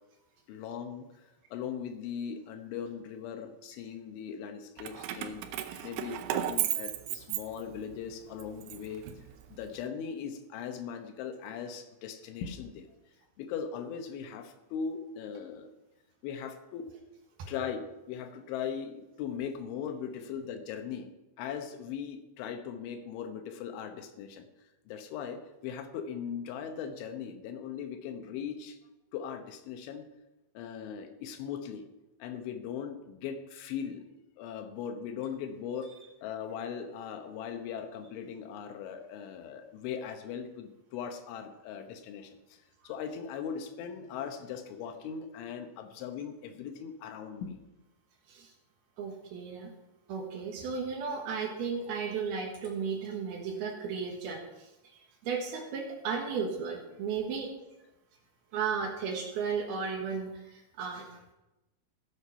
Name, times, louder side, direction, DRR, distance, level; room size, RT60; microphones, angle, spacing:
voice 1, 0.5-1.1 1.5-5.5 5.8-9.0 9.5-12.9 13.4-15.7 16.2-16.9 17.5-21.1 21.4-24.5 24.9-28.8 29.1-30.1 30.5-31.9 32.2-34.1 34.4-35.9 36.2-42.6 42.8-47.6, left 7 dB, 80° left, 7 dB, 3.4 m, -39 dB
Keys jangling, 4.8-8.0 8.4-9.7, right 13 dB, 80° right, 3.1 m, -35 dB
voice 2, 49.0-49.7 50.1-54.4 54.9-57.5 58.5-61.0, right 6 dB, 65° right, 2 dB, 2.9 m, -34 dB
15.0 x 8.0 x 5.6 m, 0.99 s
omnidirectional pair, 5.5 m